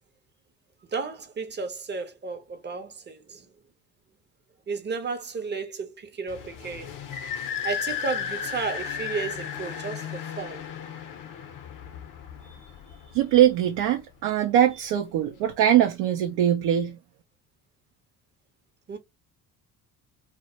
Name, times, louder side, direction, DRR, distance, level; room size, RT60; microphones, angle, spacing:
voice 1, 0.9-3.5 4.7-6.9 7.6-10.6 18.9-19.0, right 5 dB, 20° right, 0.7 m, -33 dB
sound 1, 6.3-13.6, left 8 dB, 40° left, 0.7 m, -35 dB
voice 2, 12.4-17.0, right 11 dB, 60° right, 0.6 m, -22 dB
2.2 x 2.0 x 2.8 m
hypercardioid pair, 60°, 49 cm